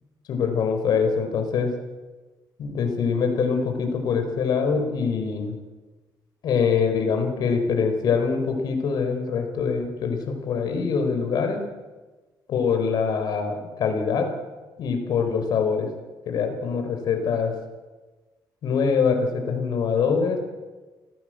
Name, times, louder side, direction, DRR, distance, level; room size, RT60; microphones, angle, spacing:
voice 1, 0.3-1.7 2.6-5.6 6.4-11.6 12.5-14.3 14.8-15.9 16.2-17.5 18.6-20.4, left 5 dB, 65° left, 5 dB, 4.9 m, -24 dB
29.0 x 17.0 x 8.0 m, 1.3 s
cardioid pair, 165°, 8 cm